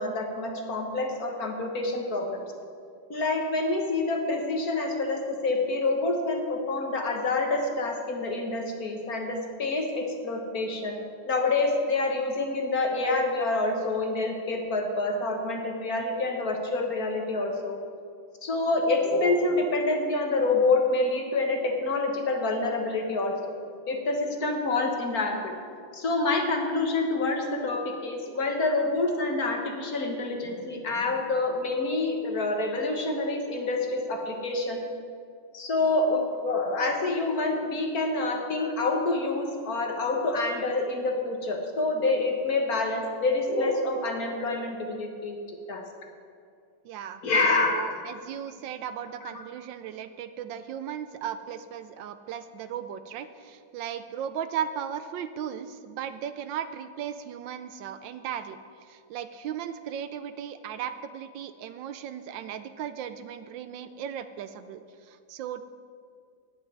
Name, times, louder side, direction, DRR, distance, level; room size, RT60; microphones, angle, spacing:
voice 1, 0.0-2.4 3.1-10.9 11.3-17.8 18.4-23.3 23.9-25.5 25.9-34.8 35.5-45.8 47.2-47.7, left 2 dB, 50° left, 2 dB, 1.6 m, -27 dB
voice 2, 46.8-47.2 47.6-65.7, right 9 dB, 75° right, 11 dB, 1.2 m, -36 dB
9.0 x 8.6 x 9.3 m, 2.3 s
omnidirectional pair, 2.2 m